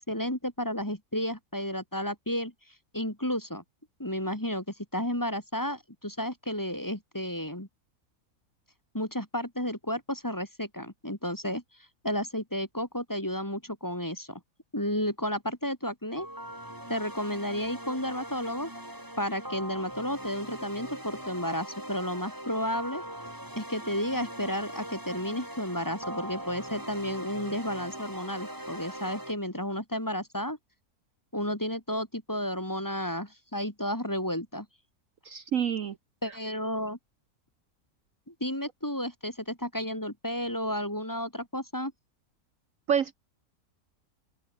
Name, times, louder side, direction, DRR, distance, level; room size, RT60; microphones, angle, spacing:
voice 1, 0.0-2.5 2.9-3.6 4.0-7.7 8.9-11.6 12.0-14.4 14.7-16.3 16.9-18.7 19.2-23.0 23.6-30.6 31.3-34.7 36.2-37.0 38.3-41.9, equal, 10° left, 3.1 m, -32 dB
sound 1, 16.2-29.3, right 1 dB, 10° right, 4.3 m, -41 dB
voice 2, 35.2-36.0 42.9-43.1, right 8 dB, 60° right, 1.3 m, -27 dB
open air
omnidirectional pair, 1.6 m